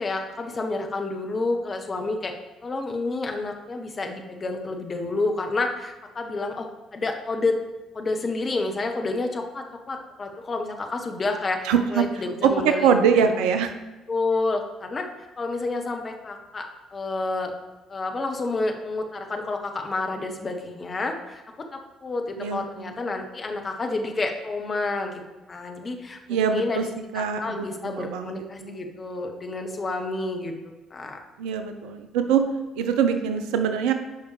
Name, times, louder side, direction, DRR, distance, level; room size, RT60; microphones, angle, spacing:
voice 1, 0.0-2.3 2.6-6.7 6.9-7.6 7.9-12.9 13.2-13.5 14.1-15.0 15.4-16.7 16.9-17.5 17.9-21.4 22.0-25.2 25.5-26.8 27.1-30.5 30.9-31.2, left 3 dB, 35° left, 4 dB, 1.0 m, -29 dB
voice 2, 11.6-12.0 12.4-13.7 22.4-22.9 26.3-26.8 27.1-28.3 28.6-28.8 31.4-32.5 32.8-33.9, right 7 dB, 65° right, 7 dB, 0.5 m, -23 dB
10.5 x 5.3 x 3.3 m, 1.1 s
figure-of-eight pair, 50°, 0 cm